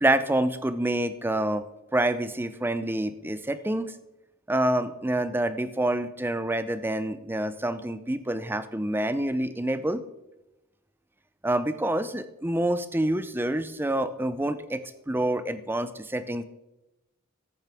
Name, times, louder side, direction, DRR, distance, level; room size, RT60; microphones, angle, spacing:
voice 1, 0.0-1.6 1.9-3.9 4.5-10.0 11.4-14.8 15.1-16.4, right 1 dB, 10° right, 12 dB, 0.5 m, -27 dB
14.0 x 11.0 x 3.6 m, 0.97 s
head